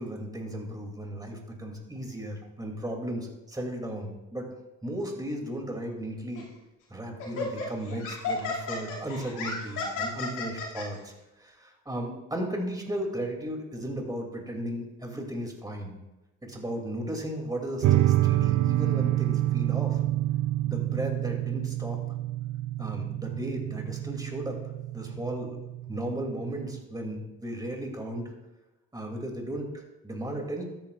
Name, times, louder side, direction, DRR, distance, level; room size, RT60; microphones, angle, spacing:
voice 1, 0.0-4.5 4.8-6.5 6.9-11.1 11.4-16.0 16.4-20.0 20.6-22.0 22.8-24.6 24.9-25.6 25.9-28.3 28.9-29.7 30.0-30.6, right 1 dB, 15° right, 1 dB, 2.5 m, -35 dB
Laughter, 6.4-6.6 7.2-10.9, left 3 dB, 90° left, 2.4 m, -33 dB
sound 1, 17.8-26.8, right 14 dB, 65° right, 0.5 m, -28 dB
13.5 x 9.0 x 2.4 m, 1.0 s
cardioid pair, 90°, 30 cm